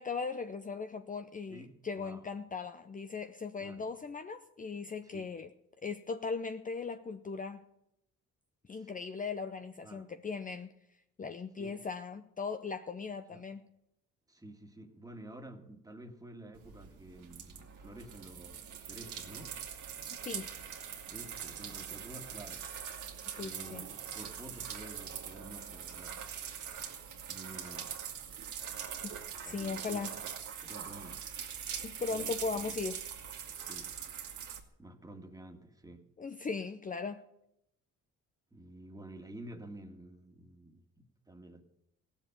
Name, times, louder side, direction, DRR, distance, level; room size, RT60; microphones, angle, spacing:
voice 1, 0.0-5.5 5.8-7.6 8.7-10.7 11.2-13.7 20.2-20.5 23.4-23.8 29.4-30.2 31.8-33.0 36.2-37.2, left 4 dB, 25° left, 0.7 m, -38 dB
voice 2, 1.5-2.3 3.6-3.9 5.0-5.3 8.7-8.9 9.8-10.1 11.6-11.8 13.3-13.4 14.3-19.6 21.0-22.7 23.3-26.2 27.3-28.0 29.5-30.3 30.6-31.3 32.1-32.9 33.6-34.0 34.8-36.1 38.5-41.6, right 1 dB, 10° right, 2.0 m, -50 dB
sound 1, 16.5-34.6, right 8 dB, 75° right, 2.1 m, -43 dB
16.5 x 7.3 x 9.1 m
cardioid pair, 90°, 30 cm